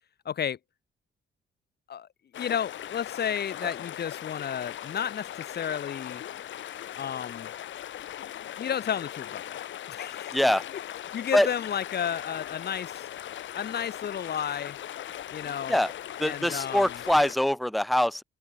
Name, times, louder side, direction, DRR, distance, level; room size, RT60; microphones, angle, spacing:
voice 1, 0.2-0.6 1.9-2.1 2.4-6.2 7.0-7.5 8.6-9.6 9.9-10.4 11.1-13.1 13.5-14.8 15.3-15.8 16.2-17.0, left 8 dB, 55° left, 2.5 m, -32 dB
sound 1, 2.3-17.3, left 11 dB, 70° left, 2.9 m, -39 dB
voice 2, 10.3-10.6 11.3-11.5 15.7-15.9 16.2-18.2, left 1 dB, ahead, 1.2 m, -24 dB
open air
cardioid pair, 90°, 20 cm